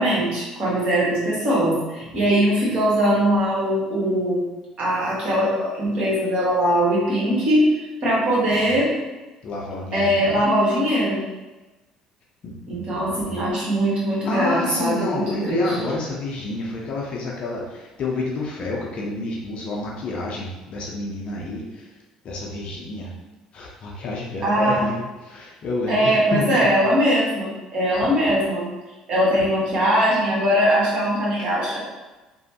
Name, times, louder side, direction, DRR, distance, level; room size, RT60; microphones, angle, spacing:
voice 1, 0.0-4.4 4.8-7.6 8.0-8.9 9.9-11.2 12.7-15.8 24.4-24.8 25.9-28.7 29.1-31.8, equal, 50° right, -7 dB, 1.3 m, -21 dB
voice 2, 8.5-8.8 9.4-10.4 12.4-13.4 14.2-21.9 22.2-23.1 23.5-26.7 29.4-29.5, left 2 dB, 50° left, -3 dB, 0.5 m, -29 dB
3.0 x 2.1 x 2.7 m, 1.1 s
hypercardioid pair, 60°, 2 cm